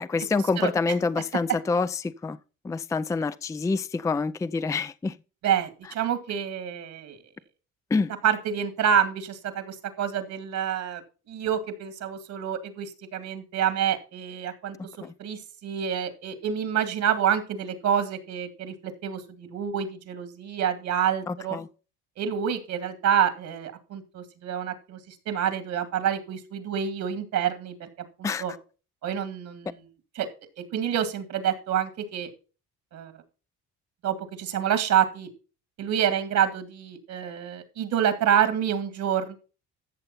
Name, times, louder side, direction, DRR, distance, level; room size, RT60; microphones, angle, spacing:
voice 1, 0.0-2.4 2.6-5.1 7.9-8.1 15.0-15.1 21.3-21.7 28.2-28.4, left 4 dB, 10° left, 0.4 m, -27 dB
voice 2, 5.4-7.2 8.2-11.0 11.3-14.8 15.2-21.6 22.2-27.9 28.2-28.5 29.0-29.8 30.2-30.3 30.7-32.3 32.9-33.1 34.0-35.3 35.8-39.4, right 9 dB, 65° right, 2.2 m, -27 dB
13.5 x 6.7 x 4.2 m
cardioid pair, 100°, 31 cm